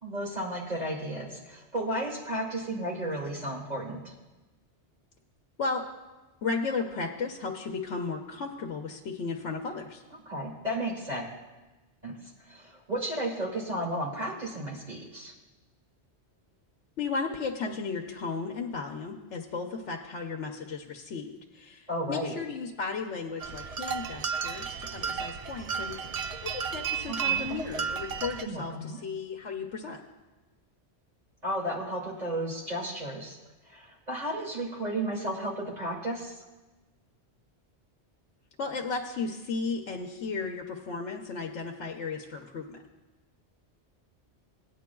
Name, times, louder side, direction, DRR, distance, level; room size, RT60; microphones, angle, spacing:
voice 1, 0.0-4.1 10.3-11.3 12.0-12.2 12.4-15.3 21.9-22.3 27.1-27.6 28.4-29.0 31.4-33.4 33.7-36.3, right 1 dB, 35° right, -3 dB, 2.4 m, -33 dB
voice 2, 6.4-10.0 17.0-25.9 26.4-30.0 38.6-42.8, left 4 dB, 85° left, 1 dB, 1.1 m, -34 dB
sound 1, 23.4-28.4, right 6 dB, 60° right, 0.4 m, -33 dB
18.0 x 9.4 x 2.3 m, 1.1 s
omnidirectional pair, 1.2 m